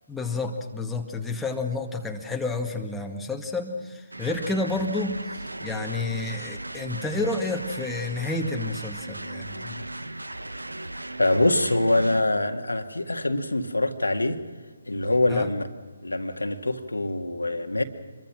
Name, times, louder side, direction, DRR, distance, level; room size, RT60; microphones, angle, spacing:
voice 1, 0.1-5.1 5.6-9.8 15.3-15.5, left 3 dB, 5° left, 1 dB, 2.0 m, -30 dB
sound 1, 4.1-12.2, right 1 dB, 85° right, 1.2 m, -37 dB
voice 2, 11.2-14.4 14.9-15.7 16.0-17.8, left 2 dB, 80° left, 5 dB, 2.0 m, -24 dB
26.5 x 22.5 x 6.3 m, 1.4 s
figure-of-eight pair, 140°, 0 cm